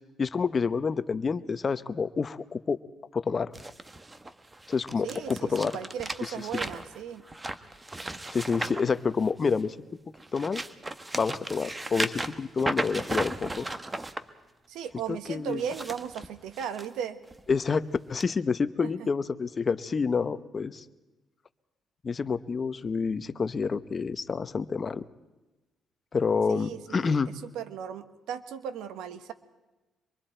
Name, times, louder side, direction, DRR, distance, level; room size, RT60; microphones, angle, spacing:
voice 1, 0.2-2.8 3.1-3.5 4.7-5.7 8.3-9.8 10.3-10.6 11.1-13.7 15.3-15.6 17.5-20.8 22.0-25.1 26.1-27.3, left 5 dB, 40° left, 13 dB, 0.9 m, -28 dB
sound 1, 3.5-9.7 10.1-14.2 15.5-16.9 17.3-17.6 18.2-18.3, right 2 dB, 20° right, 1.2 m, -36 dB
voice 2, 5.0-7.3 14.7-17.2 18.8-19.1 26.5-29.3, right 8 dB, 90° right, 10 dB, 1.3 m, -37 dB
25.5 x 23.0 x 4.5 m, 1.1 s
cardioid pair, 90°, 0 cm